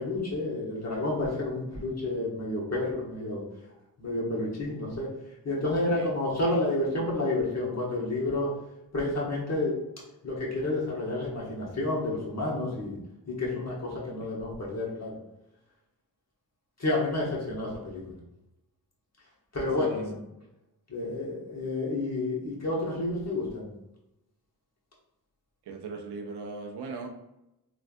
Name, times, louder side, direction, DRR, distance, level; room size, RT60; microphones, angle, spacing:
voice 1, 0.0-3.4 4.0-5.1 5.4-8.5 8.9-9.8 10.2-13.0 13.3-15.2 16.8-18.0 19.5-20.1 20.9-23.7, left 2 dB, 40° left, -5 dB, 1.2 m, -30 dB
voice 2, 19.8-20.1 25.7-27.1, right 4 dB, 80° right, 4 dB, 0.5 m, -39 dB
3.3 x 2.3 x 2.6 m, 0.89 s
cardioid pair, 50°, 40 cm